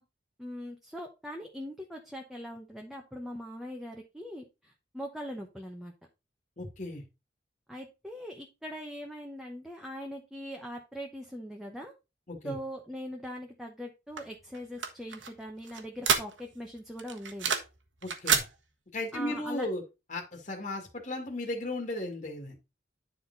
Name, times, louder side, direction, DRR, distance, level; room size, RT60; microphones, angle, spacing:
voice 1, 0.4-5.9 7.7-11.9 12.4-17.5 19.1-19.7, equal, ahead, 0 dB, 1.0 m, -41 dB
voice 2, 6.6-7.0 12.3-12.6 18.0-18.5 18.9-19.8 20.1-22.5, left 1 dB, 40° left, 1 dB, 1.9 m, -35 dB
sound 1, 14.2-16.7 17.0-17.8 18.0-18.5, right 6 dB, 85° right, 1.4 m, -29 dB
10.0 x 4.3 x 4.0 m, 0.27 s
head